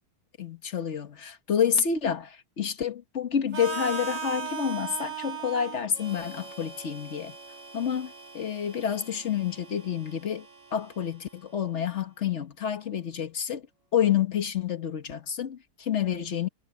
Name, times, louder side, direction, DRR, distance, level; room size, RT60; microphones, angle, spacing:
voice 1, 0.4-7.3 7.7-10.4 10.7-13.6 13.9-16.5, left 8 dB, 45° left, 1.5 m, -29 dB
Harmonica, 3.5-11.4, right 5 dB, 50° right, 5.1 m, -39 dB
omnidirectional pair, 1.7 m